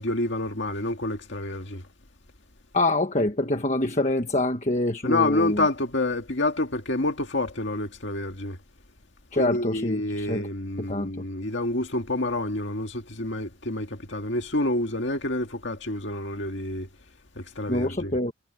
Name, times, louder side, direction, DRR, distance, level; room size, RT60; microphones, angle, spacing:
voice 1, 0.0-1.8 5.0-8.6 9.3-16.9 17.4-18.1, left 2 dB, 65° left, 2.0 m, -28 dB
voice 2, 2.7-5.6 9.3-10.4 10.8-11.2 17.7-18.3, left 2 dB, 35° left, 1.4 m, -25 dB
head